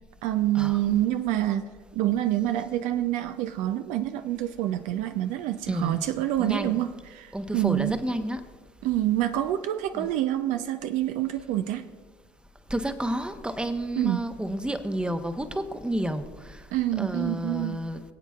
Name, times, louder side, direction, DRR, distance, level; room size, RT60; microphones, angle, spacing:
voice 1, 0.2-1.6 1.9-8.0 8.8-11.8 14.0-14.3 16.7-17.8, right 13 dB, 65° right, 10 dB, 0.5 m, -27 dB
voice 2, 5.7-6.1 6.4-6.8 7.3-8.4 9.9-10.1 12.7-16.6 17.0-18.0, right 1 dB, 5° right, 9 dB, 0.8 m, -30 dB
22.5 x 8.0 x 2.4 m, 1.4 s
hypercardioid pair, 70°, 14 cm